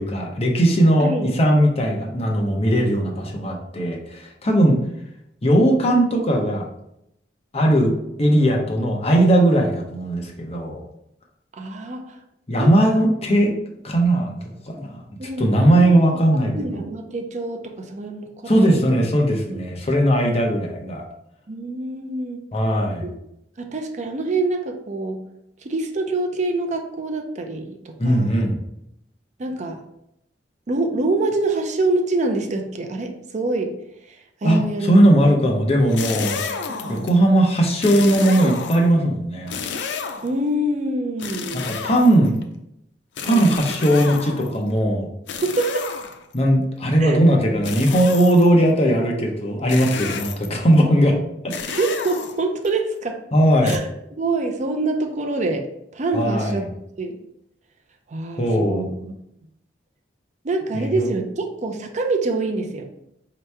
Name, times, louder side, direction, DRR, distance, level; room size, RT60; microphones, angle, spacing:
voice 1, 0.0-4.8 5.4-6.6 7.5-10.8 12.5-13.5 13.8-14.3 14.7-15.0 15.4-16.8 18.5-21.0 22.5-23.1 28.0-28.6 34.4-36.4 36.9-39.5 41.5-42.3 43.2-45.1 46.3-51.2 51.4-51.5 53.3-53.8 56.1-56.6 58.4-58.9 60.7-61.1, right 1 dB, 35° left, 0 dB, 0.7 m, -18 dB
voice 2, 11.5-12.2 12.6-13.0 15.2-16.0 16.5-18.9 21.5-22.4 23.0-23.2 23.6-25.2 25.6-28.5 29.4-29.8 30.7-33.7 34.1-34.9 35.2-35.4 36.7-37.1 40.2-41.7 43.2-43.5 45.6-45.9 47.0-47.2 51.8-53.2 53.6-55.6 55.9-56.7 57.0-57.2 58.1-58.9 60.4-62.8, right 2 dB, 45° right, 4 dB, 0.5 m, -25 dB
sound 1, 35.8-37.2 37.8-39.0 39.5-40.4 41.2-42.4 43.2-44.6 45.3-46.4 47.6-48.6 49.7-50.6 51.5-52.7 53.7-53.8, left 5 dB, 85° left, 0.5 m, -31 dB
4.5 x 2.9 x 3.3 m, 0.79 s
head